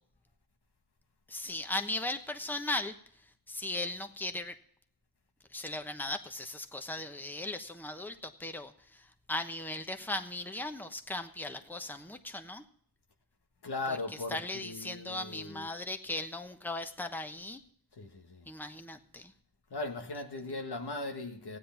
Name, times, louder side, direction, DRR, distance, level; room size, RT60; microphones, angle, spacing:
voice 1, 1.3-2.9 3.5-4.5 5.5-12.6 13.9-14.0 14.3-17.6 18.5-19.3, left 2 dB, 5° left, 1.1 m, -37 dB
voice 2, 13.6-15.7 17.9-18.5 19.7-21.6, left 2 dB, 80° left, 1.6 m, -38 dB
15.5 x 9.8 x 5.8 m
wide cardioid pair, 60°, 39 cm